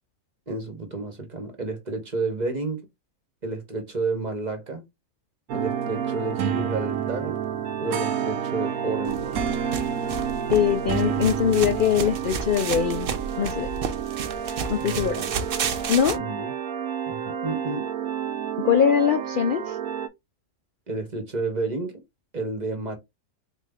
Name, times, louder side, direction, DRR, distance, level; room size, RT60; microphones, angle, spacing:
voice 1, 0.5-2.8 3.4-4.8 5.5-7.4 7.8-9.5 14.8-15.3 16.1-16.5 17.1-17.8 20.9-22.0 22.3-23.0, right 3 dB, 35° right, 1.0 m, -31 dB
sound 1, 5.5-20.1, right 8 dB, 85° right, 1.1 m, -29 dB
sound 2, 9.1-16.2, right 6 dB, 55° right, 0.7 m, -32 dB
voice 2, 10.5-13.1 13.4-13.7 14.7-15.2 15.9-16.2 18.6-19.8, left 8 dB, 85° left, 0.4 m, -22 dB
4.2 x 2.6 x 3.4 m
omnidirectional pair, 1.5 m